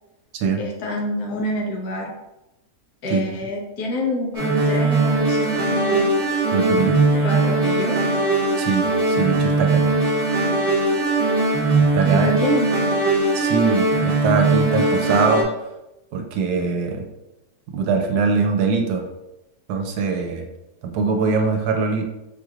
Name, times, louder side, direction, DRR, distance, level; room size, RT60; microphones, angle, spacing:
voice 1, 0.6-2.1 3.0-6.1 7.1-8.0 12.0-12.7, left 1 dB, 70° left, -1 dB, 1.4 m, -27 dB
sound 1, 4.3-15.4, right 3 dB, 25° right, 1.1 m, -20 dB
voice 2, 6.5-7.0 8.6-9.9 11.8-12.3 13.3-15.5 16.1-17.0 17.7-19.1 19.7-20.5 20.8-22.0, right 5 dB, 75° right, 4 dB, 1.1 m, -22 dB
5.3 x 3.1 x 2.4 m, 0.94 s
omnidirectional pair, 1.7 m